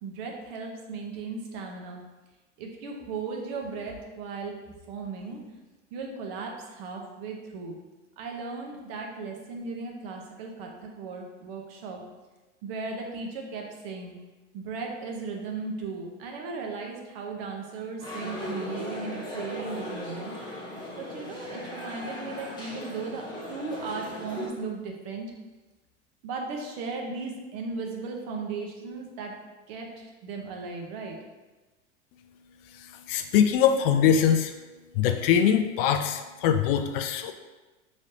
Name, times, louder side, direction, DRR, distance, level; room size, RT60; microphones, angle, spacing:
voice 1, 0.0-2.0 2.6-4.6 4.9-5.4 5.9-7.8 8.2-12.0 12.6-14.1 14.5-20.3 20.9-23.2 23.5-25.3 26.2-29.3 29.7-31.2, right 4 dB, 55° right, 1 dB, 1.0 m, -36 dB
sound 1, 18.0-24.5, left 1 dB, 10° left, 1.1 m, -37 dB
voice 2, 32.7-34.5 34.9-37.3, left 8 dB, 50° left, 7 dB, 0.4 m, -23 dB
4.9 x 3.1 x 2.8 m, 1.2 s
hypercardioid pair, 90°, 37 cm